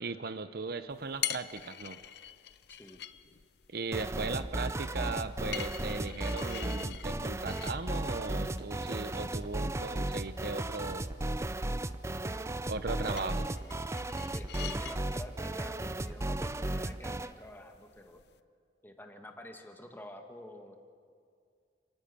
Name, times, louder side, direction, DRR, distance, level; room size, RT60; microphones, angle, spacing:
voice 1, 0.0-2.0 3.7-11.1 12.7-13.5, right 3 dB, 60° right, 12 dB, 0.8 m, -38 dB
sound 1, 0.9-18.4, left 11 dB, 65° left, 0.7 m, -46 dB
voice 2, 2.7-3.0 13.0-13.4 14.3-18.2 18.8-20.8, left 1 dB, 10° left, 4 dB, 1.9 m, -48 dB
sound 2, 3.9-17.3, right 1 dB, 15° right, 0.5 m, -35 dB
29.0 x 19.0 x 7.0 m, 2.2 s
head